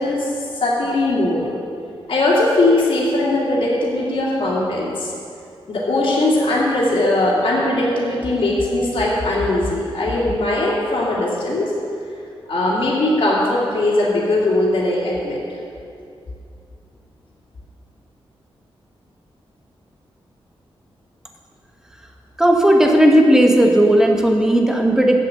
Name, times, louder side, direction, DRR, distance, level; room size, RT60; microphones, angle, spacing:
voice 1, 0.0-1.4 2.1-5.1 5.7-11.7 12.5-15.4, left 2 dB, 60° left, -8 dB, 2.2 m, -19 dB
voice 2, 22.4-25.2, right 1 dB, 5° right, 1 dB, 1.1 m, -14 dB
7.8 x 7.4 x 7.7 m, 2.5 s
wide cardioid pair, 125°, 10 cm